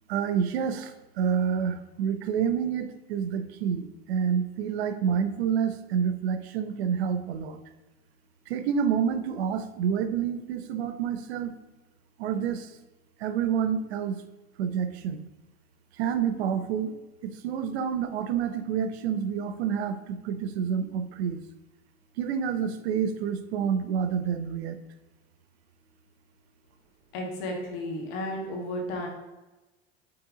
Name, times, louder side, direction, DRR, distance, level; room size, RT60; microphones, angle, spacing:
voice 1, 0.1-7.6 8.5-11.5 12.2-12.7 13.2-14.2 14.6-15.2 16.0-16.9 17.2-21.4 22.2-24.8, right 7 dB, 90° right, 10 dB, 0.7 m, -28 dB
voice 2, 27.1-29.1, left 1 dB, 65° left, 0 dB, 1.9 m, -33 dB
5.8 x 4.5 x 3.8 m, 1.1 s
supercardioid pair, 130°, 31 cm